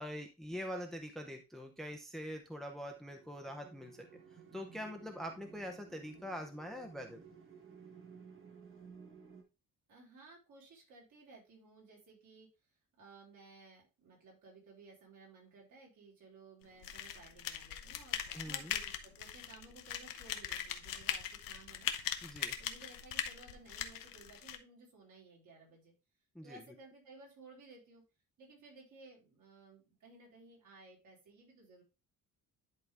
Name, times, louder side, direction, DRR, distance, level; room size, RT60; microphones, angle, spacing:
voice 1, 0.0-4.1 4.5-7.2 18.3-18.7 22.2-22.5 26.3-26.6, equal, ahead, 5 dB, 0.7 m, -44 dB
sound 1, 2.5-9.4, right 6 dB, 35° right, 1.5 m, -56 dB
voice 2, 9.9-12.5 13.0-21.9 22.6-25.9 26.4-28.0 28.4-31.8, right 3 dB, 60° right, -3 dB, 4.2 m, -57 dB
sound 2, 16.8-24.6, left 9 dB, 80° left, 1.0 m, -40 dB
11.0 x 3.9 x 3.3 m, 0.28 s
cardioid pair, 155°, 34 cm